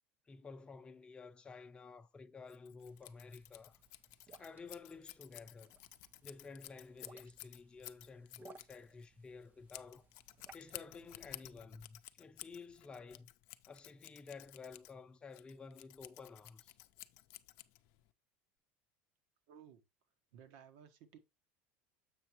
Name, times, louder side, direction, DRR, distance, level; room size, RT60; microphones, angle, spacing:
voice 1, 0.2-3.8 4.4-5.7 6.2-10.1 10.5-13.3 13.7-16.8, left 4 dB, 20° left, 0.6 m, -52 dB
Scissors, 2.5-18.1, left 17 dB, 65° left, 0.5 m, -54 dB
sound 1, 2.8-11.3, right 5 dB, 30° right, 0.5 m, -63 dB
voice 2, 19.5-19.8 20.3-21.2, right 8 dB, 75° right, 1.1 m, -57 dB
7.6 x 5.9 x 3.0 m
supercardioid pair, 125°, 5 cm